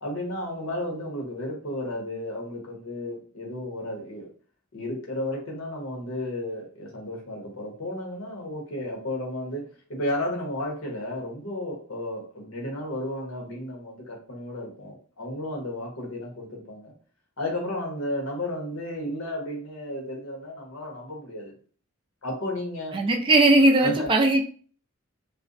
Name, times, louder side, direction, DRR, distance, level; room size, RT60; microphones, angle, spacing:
voice 1, 0.0-4.3 4.7-16.9 17.4-21.5 22.2-23.0 23.8-24.1, left 1 dB, 80° left, 0.9 m, -33 dB
voice 2, 22.9-24.4, right 2 dB, 25° right, 0.3 m, -19 dB
2.5 x 2.0 x 2.5 m
head